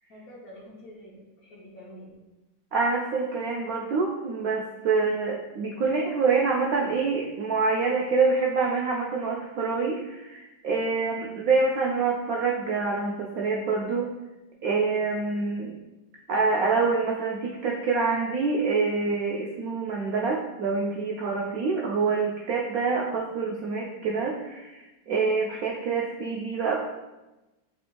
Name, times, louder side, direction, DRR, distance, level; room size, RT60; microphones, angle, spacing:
voice 1, 0.1-2.2, equal, 60° left, -3 dB, 1.1 m, -47 dB
voice 2, 2.7-14.1 14.6-15.7 16.3-24.8 25.1-26.8, right 4 dB, 75° right, -1 dB, 0.8 m, -26 dB
6.2 x 3.3 x 2.2 m, 1.1 s
omnidirectional pair, 2.0 m